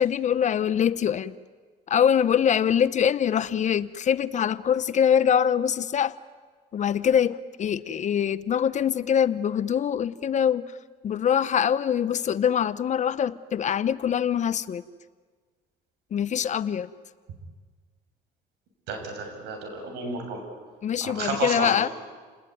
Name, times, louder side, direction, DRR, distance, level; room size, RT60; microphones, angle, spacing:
voice 1, 0.0-1.3 1.9-6.2 6.7-10.7 11.0-14.8 16.1-16.9 20.8-21.9, left 8 dB, 45° left, 15 dB, 0.9 m, -24 dB
voice 2, 18.9-20.4 21.0-21.7, right 4 dB, 85° right, 4 dB, 7.4 m, -31 dB
29.5 x 20.0 x 9.4 m, 1.5 s
cardioid pair, 110°, 17 cm